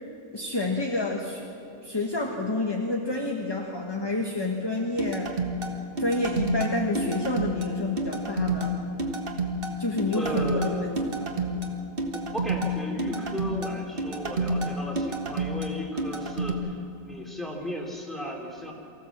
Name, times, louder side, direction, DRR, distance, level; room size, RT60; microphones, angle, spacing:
voice 1, 0.3-1.5 1.8-5.4 6.0-8.8 9.8-11.2, left 2 dB, 20° left, 1 dB, 1.3 m, -29 dB
sound 1, 5.0-16.5, right 2 dB, 40° right, 1.6 m, -29 dB
voice 2, 10.1-11.0 12.1-16.8 17.1-18.7, equal, ahead, -1 dB, 3.2 m, -35 dB
24.0 x 15.5 x 7.4 m, 2.9 s
omnidirectional pair, 1.5 m